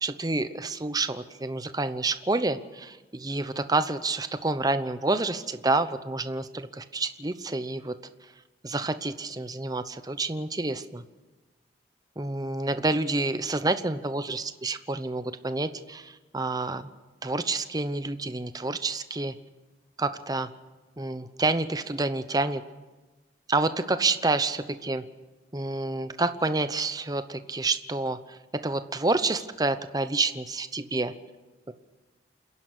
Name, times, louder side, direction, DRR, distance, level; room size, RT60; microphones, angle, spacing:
voice 1, 0.0-7.9 8.6-11.0 12.2-16.9 17.2-19.3 20.0-20.5 21.0-22.6 23.5-25.0 25.5-28.2 28.6-31.1 31.7-31.8, right 2 dB, 20° right, 11 dB, 0.9 m, -28 dB
28.5 x 11.0 x 8.3 m, 1.2 s
head